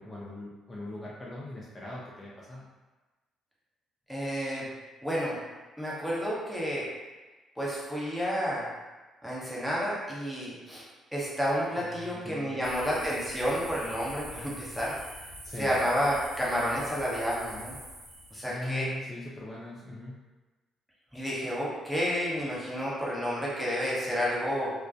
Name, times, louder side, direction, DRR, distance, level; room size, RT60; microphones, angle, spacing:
voice 1, 0.0-2.7 11.8-12.6 15.4-15.8 18.4-20.2, left 1 dB, 30° left, -6 dB, 0.5 m, -40 dB
voice 2, 4.1-4.7 5.0-5.4 5.8-6.8 7.6-8.6 9.2-10.8 11.1-15.0 15.6-17.7 18.3-18.9 21.1-24.7, equal, ahead, -7 dB, 1.0 m, -30 dB
sound 1, 12.6-18.6, equal, 85° right, 0.7 m, -45 dB
2.3 x 2.2 x 2.5 m, 1.2 s
supercardioid pair, 55°, 0 cm